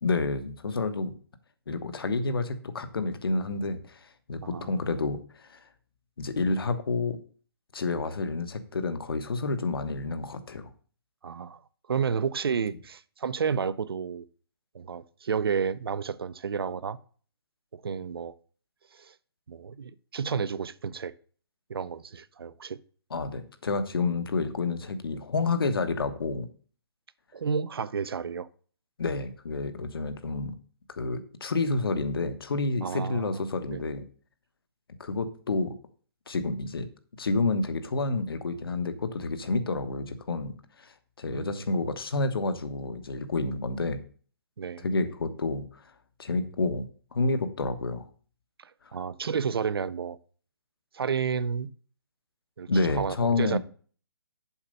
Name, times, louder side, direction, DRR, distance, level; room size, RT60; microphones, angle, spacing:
voice 1, 0.0-1.1 1.7-5.6 6.2-7.2 7.7-10.7 23.1-26.5 29.0-30.5 30.9-34.0 35.0-35.7 36.3-36.9 37.2-44.0 44.8-45.8 46.2-48.0 52.7-53.6, left 3 dB, 65° left, 1.3 m, -29 dB
voice 2, 4.4-4.8 11.2-11.6 11.9-14.2 14.7-17.0 17.7-18.4 18.9-19.1 19.5-21.1 21.7-22.8 27.3-28.5 32.8-33.4 33.7-33.9 41.3-41.7 44.6-44.9 48.6-50.2 50.9-51.7 52.6-53.6, right 6 dB, 70° right, 0.6 m, -31 dB
7.2 x 5.2 x 6.6 m
hypercardioid pair, 180°, 13 cm